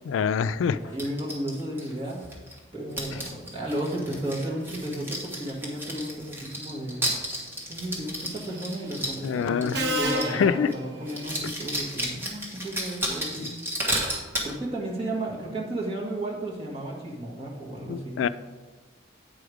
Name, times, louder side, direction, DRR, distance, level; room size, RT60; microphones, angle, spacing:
voice 1, 0.1-0.8 9.2-9.8 10.3-10.7 13.4-13.5 17.9-18.3, left 7 dB, 80° left, 14 dB, 0.3 m, -25 dB
voice 2, 0.7-2.2 2.7-7.0 7.7-13.5 14.4-18.2, right 1 dB, 30° right, -4 dB, 1.8 m, -33 dB
sound 1, 1.0-2.6 2.9-10.4 10.7-10.8 11.1-14.5, equal, 10° right, 1.3 m, -33 dB
Subway metro underground, 8.2-8.6 9.7-11.4, equal, 55° right, 0.9 m, -31 dB
8.6 x 4.9 x 4.9 m, 1.3 s
head